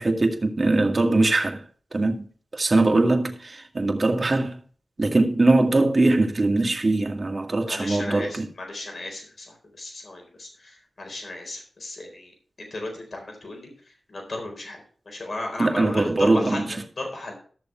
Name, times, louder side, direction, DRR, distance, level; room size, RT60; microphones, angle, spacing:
voice 1, 0.0-1.6 1.9-2.3 2.5-4.6 5.0-8.5 15.6-16.8, right 2 dB, 45° right, 2.0 m, -21 dB
voice 2, 7.6-12.3 12.6-13.7 14.1-14.8 15.1-16.6 17.0-17.4, left 2 dB, 60° left, 4.1 m, -35 dB
13.5 x 6.9 x 4.4 m
cardioid pair, 50°, 0 cm